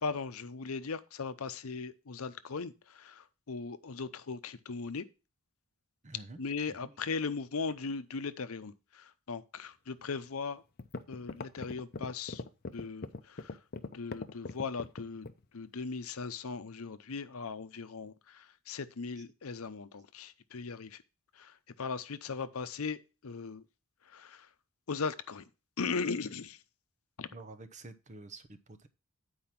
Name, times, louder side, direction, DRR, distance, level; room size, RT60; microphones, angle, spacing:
voice 1, 0.0-5.0 6.4-10.6 11.1-12.4 12.7-13.6 13.9-15.3 15.5-21.0 21.4-23.6 24.1-24.5 24.9-25.4 25.8-26.6 27.2-27.3, left 4 dB, 80° left, 0.7 m, -38 dB
voice 2, 6.0-6.4 6.7-7.0 19.2-19.3 27.3-28.9, right 2 dB, 35° right, 0.8 m, -49 dB
sound 1, 10.3-10.4 10.8-15.4, left 3 dB, 45° left, 0.6 m, -40 dB
8.6 x 4.8 x 5.8 m
head